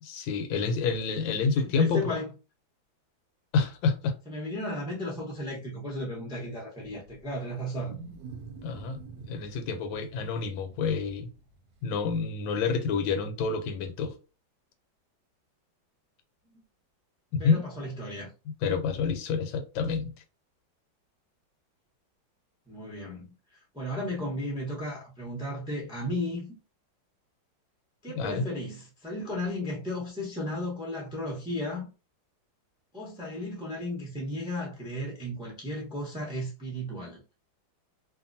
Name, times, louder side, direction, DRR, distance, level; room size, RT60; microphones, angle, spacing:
voice 1, 0.0-2.2 3.5-4.2 8.6-9.0 9.3-11.3 11.8-14.1 17.3-17.6 18.6-20.1 28.1-28.4, left 5 dB, 80° left, 1.4 m, -28 dB
voice 2, 1.8-2.3 4.3-8.0 16.5-16.6 17.4-18.3 22.7-26.5 28.0-31.9 32.9-37.2, left 1 dB, 5° right, 0.4 m, -34 dB
Wild animals, 6.8-11.8, right 4 dB, 75° right, 1.1 m, -47 dB
2.9 x 2.5 x 2.6 m
omnidirectional pair, 2.1 m